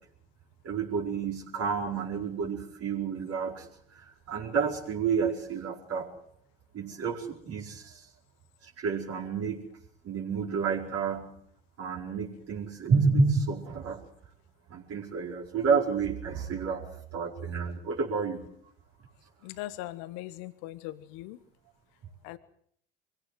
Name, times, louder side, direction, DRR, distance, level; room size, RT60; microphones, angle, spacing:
voice 1, 0.6-3.6 4.3-6.1 6.7-7.8 8.8-9.6 10.0-11.3 11.8-14.0 14.7-16.8 17.1-18.4, right 5 dB, 55° right, 0 dB, 4.8 m, -29 dB
voice 2, 19.4-21.4 22.2-22.4, left 16 dB, 70° left, 13 dB, 1.3 m, -40 dB
23.0 x 16.5 x 7.8 m, 0.64 s
hypercardioid pair, 65°, 29 cm